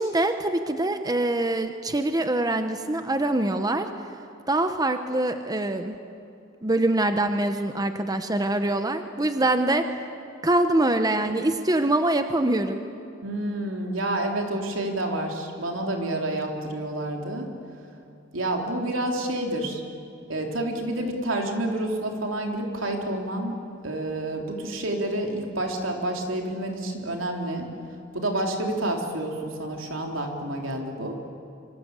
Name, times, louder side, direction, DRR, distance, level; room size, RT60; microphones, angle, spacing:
voice 1, 0.0-3.9 4.5-6.0 6.6-9.8 10.4-12.8, right 1 dB, 20° right, 7 dB, 1.0 m, -24 dB
voice 2, 13.2-17.5 18.3-19.8 20.3-23.6 23.8-27.7 28.1-31.2, right 1 dB, 75° right, 2 dB, 3.8 m, -29 dB
26.0 x 25.5 x 8.3 m, 2.7 s
head